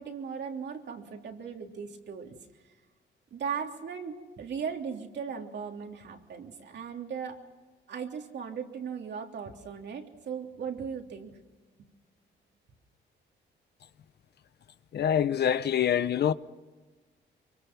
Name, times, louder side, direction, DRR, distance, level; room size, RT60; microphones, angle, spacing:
voice 1, 0.0-2.4 3.3-7.4 7.9-11.4, right 6 dB, 60° right, 3.3 m, -37 dB
voice 2, 14.9-16.3, left 9 dB, 55° left, 0.9 m, -25 dB
25.0 x 24.0 x 6.1 m
cardioid pair, 90°, 20 cm